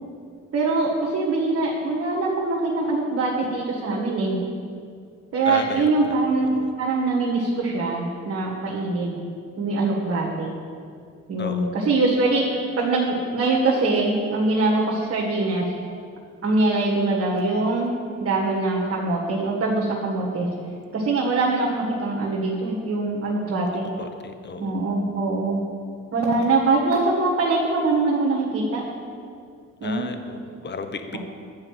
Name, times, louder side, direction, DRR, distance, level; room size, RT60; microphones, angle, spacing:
voice 1, 0.5-4.4 5.3-6.5 6.8-9.2 9.6-10.5 11.3-15.6 16.4-20.5 20.9-23.9 24.6-25.6 26.1-28.8 29.8-30.1, right 3 dB, 50° right, -4 dB, 1.6 m, -23 dB
voice 2, 5.5-6.1 6.5-6.7 11.4-11.7 24.0-24.8 29.8-31.2, left 4 dB, 35° left, 7 dB, 0.9 m, -34 dB
9.7 x 4.8 x 7.4 m, 2.3 s
cardioid pair, 90°, 30 cm